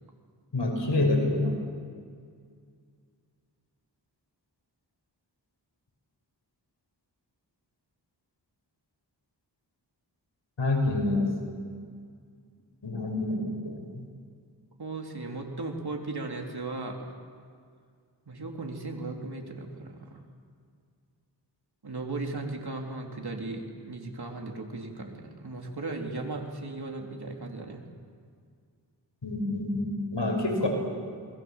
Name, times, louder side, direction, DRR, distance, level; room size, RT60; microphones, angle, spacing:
voice 1, 0.5-1.6 10.6-11.3 12.8-14.1 29.2-30.7, left 2 dB, 85° left, 1 dB, 6.2 m, -27 dB
voice 2, 14.8-17.1 18.3-20.2 21.8-27.8, right 3 dB, 65° right, 1 dB, 3.7 m, -36 dB
28.0 x 22.0 x 7.4 m, 2.1 s
wide cardioid pair, 65°, 42 cm